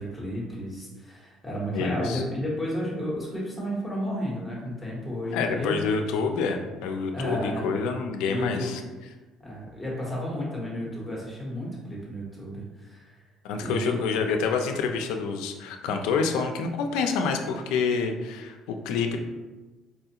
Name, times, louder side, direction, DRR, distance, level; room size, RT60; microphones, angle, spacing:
voice 1, 0.0-5.8 7.1-7.7 8.2-8.8 9.4-13.2 13.6-14.0, equal, 5° left, -4 dB, 1.0 m, -32 dB
voice 2, 1.7-2.2 5.3-8.8 13.4-19.2, left 5 dB, 90° left, 4 dB, 0.4 m, -27 dB
4.2 x 2.4 x 2.8 m, 1.2 s
cardioid pair, 150°, 0 cm